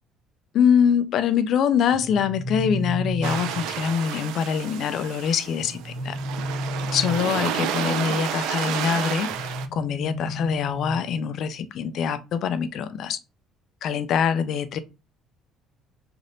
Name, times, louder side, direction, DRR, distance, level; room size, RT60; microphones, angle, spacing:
voice 1, 0.5-6.2 6.9-13.2 13.8-14.8, left 7 dB, 45° left, 0.3 m, -24 dB
sound 1, 1.9-3.9 5.6-7.6 9.3-11.3, equal, 45° right, 1.4 m, -32 dB
sound 2, 3.2-9.7, right 8 dB, 85° right, 0.3 m, -30 dB
3.4 x 2.4 x 2.6 m
cardioid pair, 175°, 0 cm